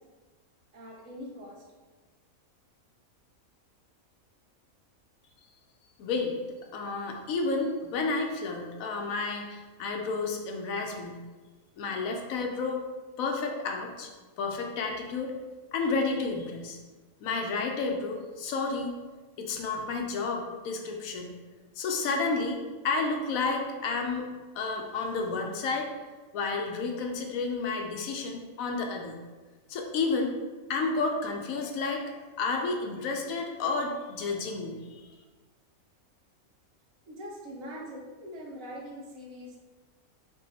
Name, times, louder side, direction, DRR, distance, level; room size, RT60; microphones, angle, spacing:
voice 1, 0.7-1.6 37.1-39.6, equal, 70° right, -2 dB, 1.2 m, -42 dB
voice 2, 6.0-6.4 6.7-11.2 11.8-12.8 13.2-14.1 14.4-15.3 15.7-16.8 17.2-19.0 19.4-21.3 21.8-24.3 24.5-25.9 26.3-29.2 29.7-30.4 30.7-35.1, left 3 dB, 75° left, 2 dB, 1.0 m, -31 dB
3.8 x 2.7 x 3.9 m, 1.3 s
omnidirectional pair, 1.5 m